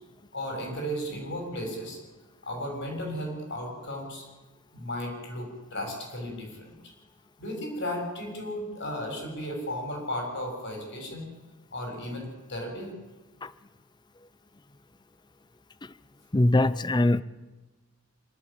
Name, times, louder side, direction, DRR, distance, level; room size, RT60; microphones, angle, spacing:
voice 1, 0.3-2.0 2.4-4.2 4.7-6.8 7.4-11.3 11.7-12.9, equal, 55° left, 2 dB, 6.7 m, -35 dB
voice 2, 16.3-17.2, left 1 dB, 20° left, 17 dB, 0.6 m, -22 dB
26.0 x 12.5 x 8.9 m, 1.1 s
head